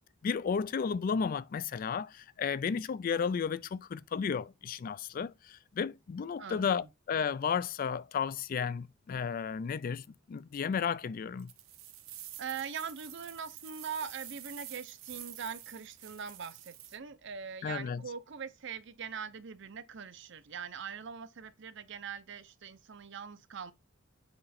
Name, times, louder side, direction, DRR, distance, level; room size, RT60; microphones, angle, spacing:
voice 1, 0.2-11.5 17.6-18.0, left 6 dB, 45° left, 0.3 m, -33 dB
voice 2, 6.4-6.7 12.4-23.7, right 6 dB, 60° right, 0.6 m, -42 dB
sound 1, 11.4-17.0, right 12 dB, 85° right, 1.0 m, -48 dB
7.8 x 3.1 x 4.2 m
head